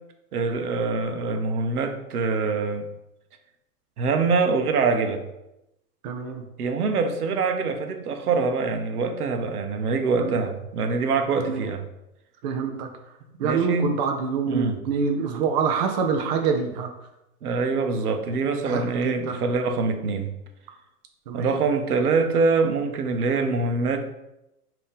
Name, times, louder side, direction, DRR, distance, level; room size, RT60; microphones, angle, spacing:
voice 1, 0.3-2.9 4.0-5.2 6.6-11.9 13.4-13.9 14.4-14.8 17.4-20.3 21.3-24.0, right 4 dB, 70° right, 6 dB, 0.8 m, -24 dB
voice 2, 6.0-6.4 10.2-10.4 11.5-11.7 12.4-12.9 13.4-16.9 18.6-19.4 21.3-21.6, right 6 dB, 30° right, 4 dB, 0.4 m, -26 dB
5.3 x 2.9 x 3.4 m, 0.90 s
figure-of-eight pair, 105°, 47 cm